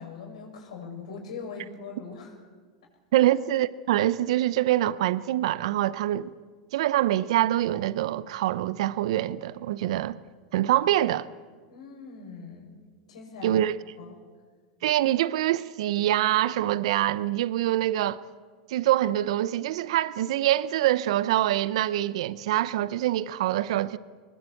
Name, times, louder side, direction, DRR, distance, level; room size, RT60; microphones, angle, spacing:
voice 1, 0.0-2.4 3.1-3.2 11.7-12.8 13.1-13.6 14.0-14.2, left 5 dB, 80° left, 6.7 m, -41 dB
voice 2, 3.1-6.3 6.7-10.2 10.5-11.3 13.4-13.8 14.8-18.2 18.7-24.0, right 13 dB, 70° right, 0.8 m, -25 dB
22.5 x 20.5 x 8.5 m
hypercardioid pair, 105°, 3 cm